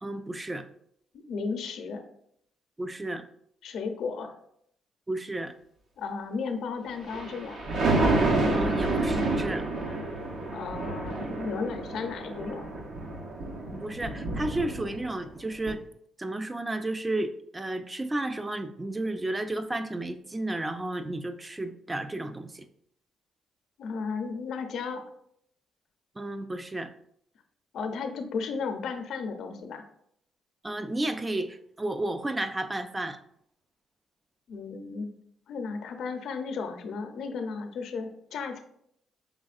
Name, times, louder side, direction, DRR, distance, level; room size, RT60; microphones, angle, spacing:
voice 1, 0.0-0.7 2.8-3.2 5.1-5.5 8.5-9.6 13.7-15.8 16.2-22.6 26.2-26.9 30.6-33.2, right 2 dB, 20° right, 10 dB, 0.4 m, -32 dB
voice 2, 1.3-2.0 3.6-4.3 6.0-7.6 10.5-12.7 23.8-25.0 27.7-29.8 34.5-35.1 35.5-38.6, left 5 dB, 70° left, 6 dB, 0.5 m, -34 dB
Thunder, 6.9-15.3 15.7-15.8, right 2 dB, 65° right, 0.8 m, -29 dB
4.9 x 3.4 x 2.5 m, 0.71 s
cardioid pair, 90°, 0 cm